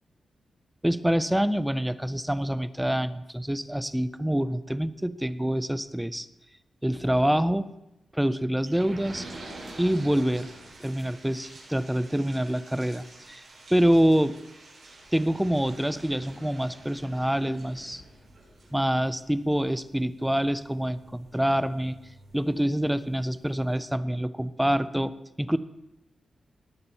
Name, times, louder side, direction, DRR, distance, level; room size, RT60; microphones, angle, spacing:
voice 1, 0.8-6.3 6.8-7.7 8.1-9.2 9.8-10.5 10.8-13.4 13.7-14.3 15.1-18.0 18.7-22.0 22.3-25.6, equal, 5° right, 13 dB, 0.5 m, -26 dB
sound 1, 8.6-23.0 23.4-23.5 23.7-23.8, right 2 dB, 50° right, 5.1 m, -47 dB
18.5 x 7.3 x 4.1 m, 0.92 s
wide cardioid pair, 135°, 0 cm